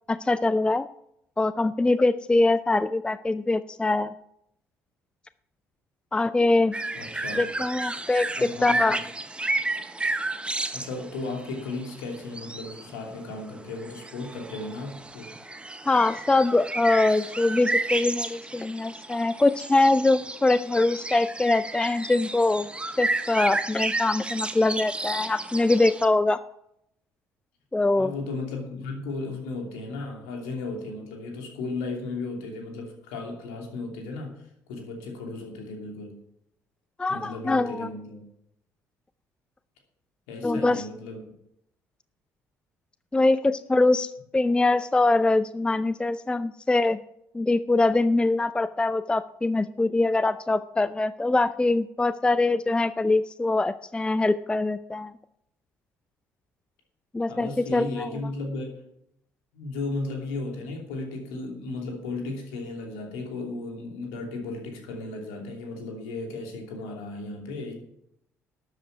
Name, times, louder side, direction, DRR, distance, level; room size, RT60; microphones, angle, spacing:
voice 1, 0.1-0.9 1.4-4.1 6.1-6.7 7.4-8.3 8.6-9.0 15.9-22.7 23.0-26.4 27.7-28.1 37.0-37.9 40.4-40.8 43.1-47.0 47.3-55.1 57.1-58.1, left 2 dB, 10° left, 15 dB, 0.5 m, -23 dB
sound 1, 6.7-26.1, right 2 dB, 10° right, 1.0 m, -32 dB
voice 2, 6.9-7.6 8.4-9.0 10.7-15.3 28.0-36.2 37.1-38.2 40.3-41.3 57.3-58.8 59.5-67.7, left 3 dB, 65° left, 2 dB, 2.8 m, -35 dB
12.5 x 8.2 x 5.8 m, 0.76 s
figure-of-eight pair, 50°, 9 cm